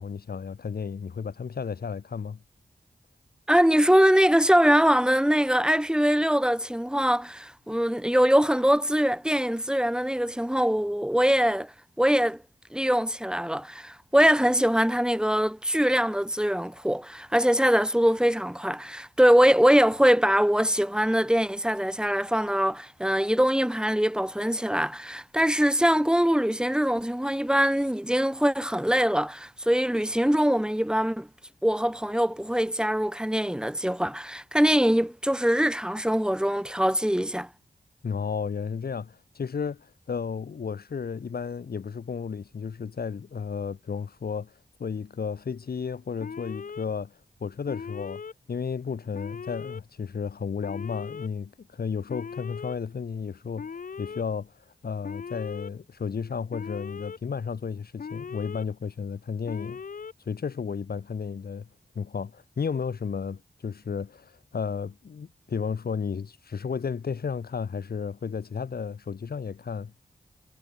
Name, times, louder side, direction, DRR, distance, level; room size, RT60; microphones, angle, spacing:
voice 1, 0.0-2.4 38.0-48.2 48.5-53.7 54.0-59.8 60.3-61.7 62.0-69.9, left 6 dB, 75° left, 1.9 m, -33 dB
voice 2, 3.5-11.7 12.0-12.4 12.7-31.3 31.6-37.5, equal, 5° right, 1.8 m, -23 dB
Alarm, 46.2-46.9 47.7-48.3 49.1-49.8 50.6-51.3 52.1-52.8 53.6-54.2 55.0-55.7 56.5-57.2 58.0-58.6 59.5-60.1, left 5 dB, 60° left, 0.9 m, -38 dB
cardioid pair, 55°, 16 cm